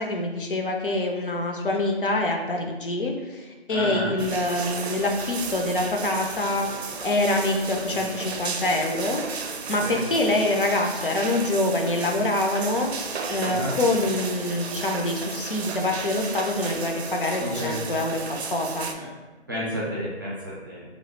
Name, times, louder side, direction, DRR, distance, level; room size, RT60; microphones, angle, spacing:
voice 1, 0.0-9.2 9.7-12.9 13.3-18.9, left 2 dB, 55° left, 2 dB, 0.5 m, -25 dB
voice 2, 3.7-4.1 7.9-8.0 9.8-10.0 13.4-13.7 17.4-17.8 19.0-19.1 19.5-20.8, equal, 20° right, -8 dB, 0.5 m, -31 dB
sound 1, 4.2-18.9, right 5 dB, 75° right, 0.5 m, -34 dB
3.1 x 2.3 x 4.1 m, 1.2 s
figure-of-eight pair, 165°, 33 cm